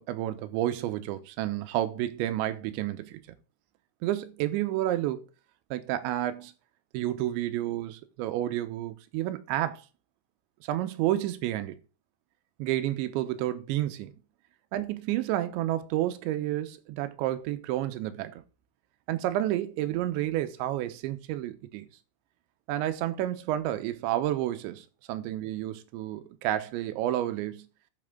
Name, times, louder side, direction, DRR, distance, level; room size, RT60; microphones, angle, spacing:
voice 1, 0.0-3.2 4.0-5.3 5.7-6.5 6.9-9.8 10.6-11.8 12.6-14.1 14.7-18.4 19.1-21.9 22.7-27.7, right 13 dB, 75° right, 3.0 m, -30 dB
11.0 x 5.4 x 3.8 m
omnidirectional pair, 5.9 m